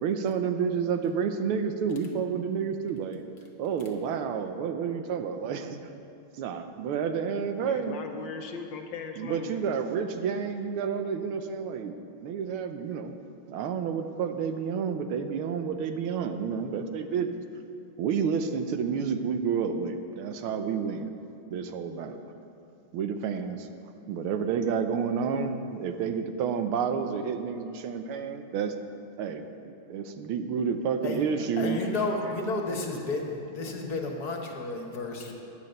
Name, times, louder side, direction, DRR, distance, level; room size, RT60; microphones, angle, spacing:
voice 1, 0.0-3.2 3.6-5.9 6.4-8.0 9.2-13.1 13.5-17.4 18.0-21.1 21.5-22.2 22.9-23.7 24.1-28.7 29.2-31.8, right 6 dB, 85° right, 7 dB, 1.6 m, -30 dB
voice 2, 7.6-9.7 31.2-31.9 32.2-32.7, left 5 dB, 65° left, 4 dB, 1.4 m, -40 dB
voice 3, 31.6-35.3, left 3 dB, 50° left, 1 dB, 1.6 m, -32 dB
10.0 x 9.5 x 6.5 m, 2.7 s
omnidirectional pair, 2.3 m